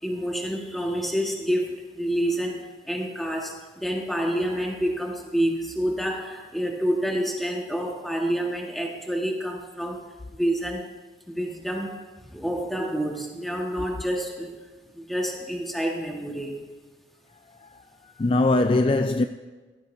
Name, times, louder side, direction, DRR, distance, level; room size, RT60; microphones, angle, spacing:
voice 1, 0.0-10.9 11.3-12.0 12.3-14.6 14.9-16.7, equal, ahead, 1.7 m, -28 dB
voice 2, 17.3-19.2, left 2 dB, 30° left, 0.4 m, -23 dB
18.5 x 14.5 x 2.8 m
head